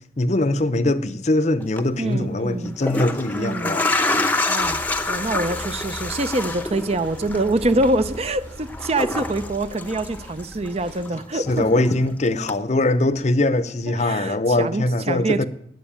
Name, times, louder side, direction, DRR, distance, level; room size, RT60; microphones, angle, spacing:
voice 1, 0.2-3.9 11.3-15.5, left 2 dB, 40° left, 0.7 m, -22 dB
sound 1, 1.6-1.8 2.6-10.7 11.0-12.0 12.5-12.6, left 2 dB, 10° left, 0.8 m, -27 dB
voice 2, 2.0-2.8 3.3-3.8 4.5-4.8 5.1-11.8 13.9-15.5, right 2 dB, 35° right, 0.6 m, -25 dB
sound 2, 4.6-11.0, right 1 dB, 80° right, 3.1 m, -40 dB
14.0 x 9.8 x 8.8 m
head